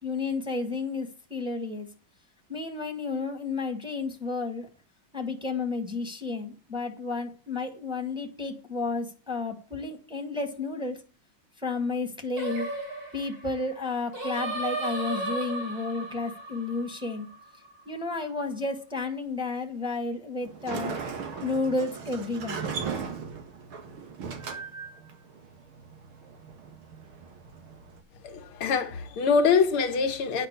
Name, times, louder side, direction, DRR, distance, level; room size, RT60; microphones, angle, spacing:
voice 1, 0.0-1.9 2.5-4.7 5.1-11.0 11.6-12.7 13.1-17.3 17.9-21.0 21.4-22.7, left 3 dB, ahead, 1.9 m, -32 dB
Singing, 12.4-17.7, right 2 dB, 45° right, 4.7 m, -35 dB
Sliding door, 20.4-28.0, right 6 dB, 75° right, 2.6 m, -38 dB
voice 2, 28.2-30.5, left 5 dB, 80° left, 2.1 m, -24 dB
9.6 x 6.1 x 8.3 m
omnidirectional pair, 2.3 m